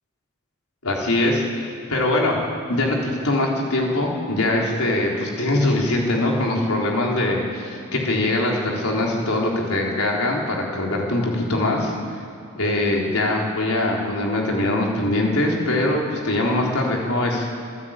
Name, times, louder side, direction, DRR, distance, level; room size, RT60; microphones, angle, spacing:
voice 1, 0.8-2.4 2.7-12.2 12.6-17.5, left 1 dB, 90° left, -1 dB, 4.1 m, -22 dB
27.5 x 11.0 x 9.1 m, 2.6 s
head